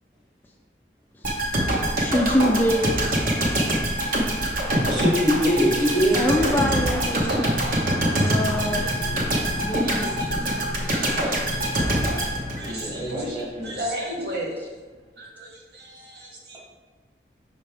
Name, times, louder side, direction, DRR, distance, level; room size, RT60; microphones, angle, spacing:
sound 1, 1.2-13.2 13.6-13.7, right 1 dB, 50° right, 1.0 m, -24 dB
voice 1, 2.0-3.0 6.1-7.3 8.2-8.9 9.6-10.2, left 1 dB, 10° left, -1 dB, 0.3 m, -24 dB
voice 2, 4.9-6.2 12.6-13.7, equal, 25° right, -4 dB, 1.5 m, -23 dB
voice 3, 7.1-8.9 9.2-10.5 10.8-12.2 12.5-14.7 15.2-16.6, right 1 dB, 65° right, -2 dB, 1.2 m, -37 dB
sound 2, 7.6-13.4, left 3 dB, 75° left, 0.6 m, -38 dB
5.6 x 5.2 x 3.3 m, 1.4 s
head